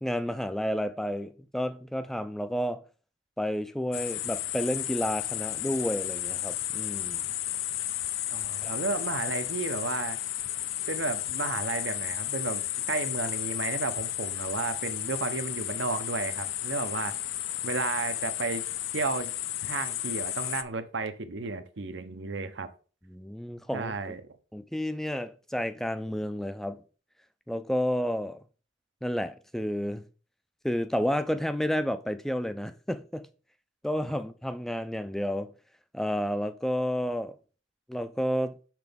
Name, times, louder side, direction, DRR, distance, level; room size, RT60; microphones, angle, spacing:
voice 1, 0.0-2.8 3.4-7.3 8.6-8.7 23.1-24.2 24.5-26.8 27.5-28.4 29.0-30.0 30.6-33.3 33.8-35.5 35.9-37.4 37.9-38.5, equal, ahead, 0.4 m, -31 dB
sound 1, 3.9-20.6, left 13 dB, 90° left, 0.5 m, -33 dB
voice 2, 8.3-10.2 10.9-17.2 17.6-18.6 18.9-19.3 19.6-22.7 23.7-24.2, right 4 dB, 70° right, 0.7 m, -33 dB
6.8 x 6.0 x 3.5 m
head